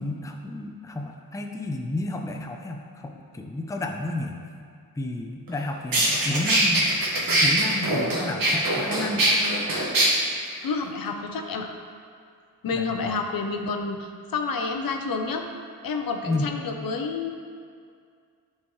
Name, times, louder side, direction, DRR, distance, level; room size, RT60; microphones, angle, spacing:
voice 1, 0.0-4.4 5.0-6.8 7.3-9.5 12.8-13.2 16.2-16.5, left 2 dB, 10° left, 2 dB, 0.5 m, -31 dB
sound 1, 5.5-5.6 5.9-10.1, right 1 dB, 65° right, 1.7 m, -22 dB
voice 2, 10.6-11.7 12.6-15.4 15.8-17.3, left 4 dB, 65° left, 4 dB, 0.8 m, -29 dB
10.5 x 4.4 x 3.2 m, 2.2 s
cardioid pair, 95°, 37 cm